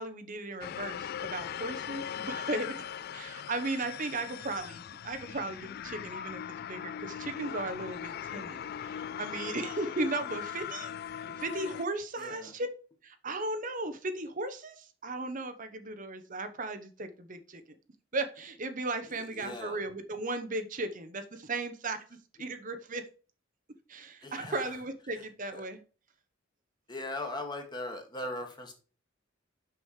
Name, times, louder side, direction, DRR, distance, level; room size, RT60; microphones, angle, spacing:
voice 1, 0.0-6.4 6.7-10.9 11.4-12.7 13.0-17.6 18.1-22.0 22.4-23.0 23.9-25.8, right 2 dB, 45° right, 8 dB, 0.9 m, -36 dB
sound 1, 0.6-11.9, left 9 dB, 50° left, 0.3 m, -40 dB
voice 2, 12.2-12.5 19.1-19.8 24.2-24.7 25.5-25.6 26.9-28.7, left 1 dB, 25° left, 3 dB, 1.8 m, -39 dB
6.5 x 6.1 x 4.8 m, 0.37 s
head